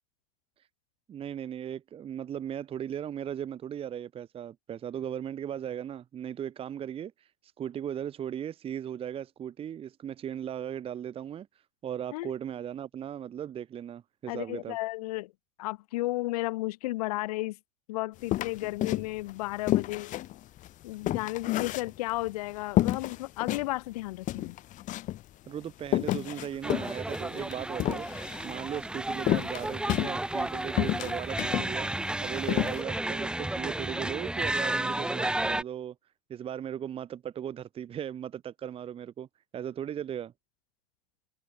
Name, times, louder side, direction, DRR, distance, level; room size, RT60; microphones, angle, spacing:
voice 1, 1.1-7.3 7.6-11.5 11.8-14.8 25.5-28.1 28.4-31.9 32.2-35.9 36.3-39.3 39.5-40.3, right 9 dB, 30° right, 1.2 m, -37 dB
voice 2, 14.3-15.3 15.6-17.6 17.9-20.3 20.8-24.6, left 19 dB, 70° left, 0.5 m, -33 dB
sound 1, 18.3-19.3 19.7-22.3 22.8-23.7 24.0-24.1 24.3-25.2 25.8-28.5 29.2-30.5 30.8-31.7 32.1-32.2 32.5-32.8, left 15 dB, 40° left, 1.2 m, -29 dB
sound 2, 26.6-35.6, right 1 dB, 5° right, 1.0 m, -32 dB
hypercardioid pair, 105°, 20 cm